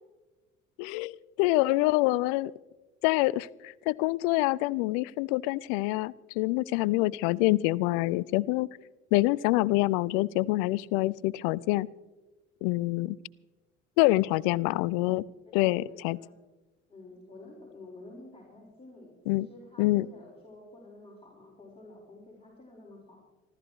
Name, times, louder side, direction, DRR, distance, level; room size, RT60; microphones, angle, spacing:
voice 1, 0.8-2.5 3.0-8.7 9.1-11.9 12.6-13.2 14.0-15.2 15.5-16.2 19.3-19.5 19.8-20.1, left 19 dB, 55° left, 24 dB, 0.5 m, -26 dB
voice 2, 15.5-16.3 16.9-23.2, left 2 dB, 15° left, -4 dB, 4.7 m, -50 dB
27.5 x 13.0 x 3.1 m, 1.2 s
figure-of-eight pair, 55°, 40 cm